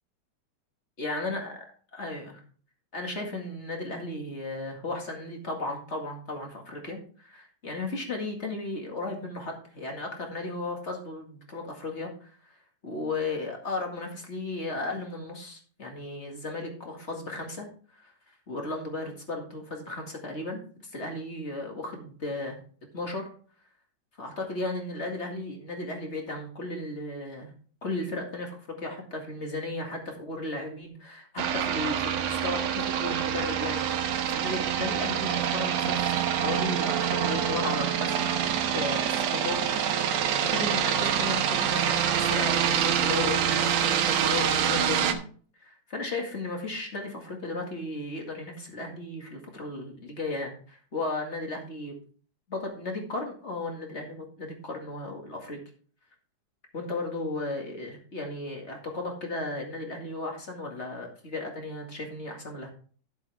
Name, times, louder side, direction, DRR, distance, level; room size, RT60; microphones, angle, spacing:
voice 1, 1.0-1.6 1.9-2.4 2.9-12.6 12.8-17.7 17.9-18.1 18.5-22.6 22.9-23.3 24.2-27.5 27.8-40.0 40.4-45.2 45.6-52.0 52.5-55.6 56.7-62.7, left 2 dB, 25° left, 1 dB, 1.8 m, -35 dB
sound 1, 31.4-45.1, right 9 dB, 70° right, 2.1 m, -26 dB
12.0 x 7.6 x 3.4 m, 0.43 s
omnidirectional pair, 3.3 m